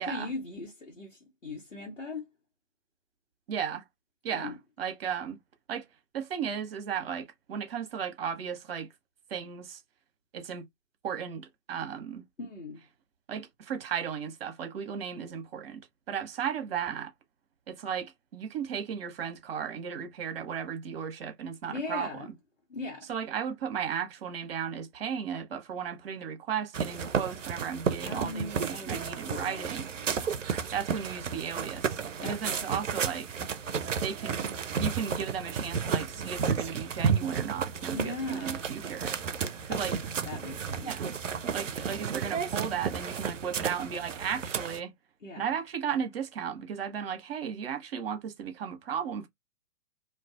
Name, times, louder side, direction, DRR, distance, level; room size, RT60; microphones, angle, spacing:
voice 1, 0.1-2.3 4.3-4.6 12.4-12.8 21.7-22.3 22.7-23.1 28.0-29.6 32.2-32.8 37.9-38.7 39.7-40.9 45.2-45.4, left 3 dB, 75° left, 1.1 m, -39 dB
voice 2, 3.5-3.8 4.2-5.4 5.7-5.9 6.1-8.9 9.3-9.8 10.3-10.7 11.0-12.2 13.3-17.1 17.7-22.1 23.1-29.9 30.7-33.4 34.0-34.4 34.8-39.1 39.6-39.9 40.8-41.1 41.5-44.9 45.4-49.3, right 7 dB, 50° right, 0.9 m, -35 dB
sound 1, 26.7-44.8, right 6 dB, 80° right, 0.5 m, -32 dB
2.4 x 2.4 x 2.3 m
figure-of-eight pair, 110°, 37 cm